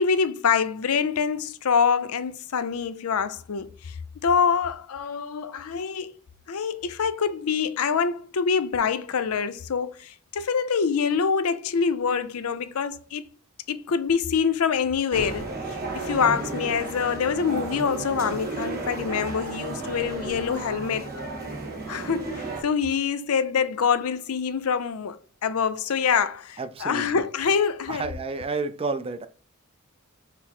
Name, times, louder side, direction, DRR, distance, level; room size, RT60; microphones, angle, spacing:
voice 1, 0.0-4.0 4.2-6.1 6.5-13.3 13.7-21.1 21.9-28.1, left 6 dB, 80° left, 0.5 m, -25 dB
sound 1, 15.1-22.6, right 3 dB, 45° right, 1.4 m, -33 dB
voice 2, 26.6-27.2 27.9-29.3, right 4 dB, 25° right, 0.4 m, -30 dB
5.8 x 2.0 x 4.4 m
head